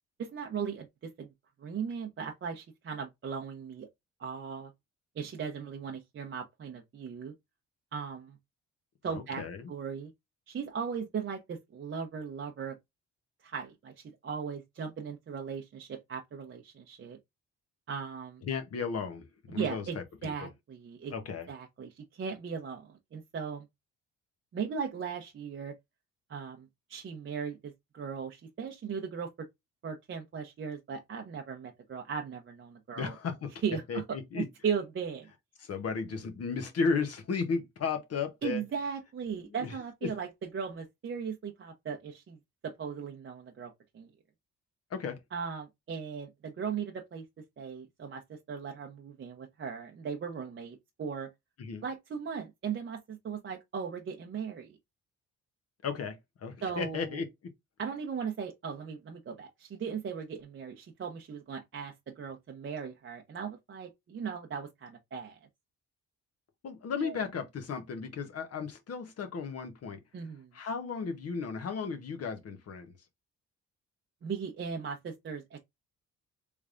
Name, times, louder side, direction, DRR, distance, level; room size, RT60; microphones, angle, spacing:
voice 1, 0.2-1.3 1.6-3.9 4.2-4.7 5.2-7.3 7.9-8.4 9.0-9.4 9.7-10.1 10.5-12.8 13.4-17.2 17.9-18.4 19.5-20.0 20.2-21.1 21.5-23.7 24.5-25.7 26.3-29.5 29.8-33.2 33.6-35.3 38.4-42.4 42.6-44.1 45.3-47.2 47.6-51.3 51.8-54.8 56.6-57.2 57.8-65.4 67.0-67.2 70.1-70.5 74.2-75.6, right 6 dB, 40° right, 0.7 m, -38 dB
voice 2, 9.1-9.7 18.4-20.5 21.1-21.5 33.0-33.5 33.9-34.5 35.6-38.6 39.5-39.7 40.0-40.1 44.9-45.2 51.6-51.8 55.8-57.3 66.6-70.0 70.5-72.9, left 5 dB, 55° left, 0.9 m, -35 dB
3.3 x 3.3 x 2.4 m
cardioid pair, 90°, 30 cm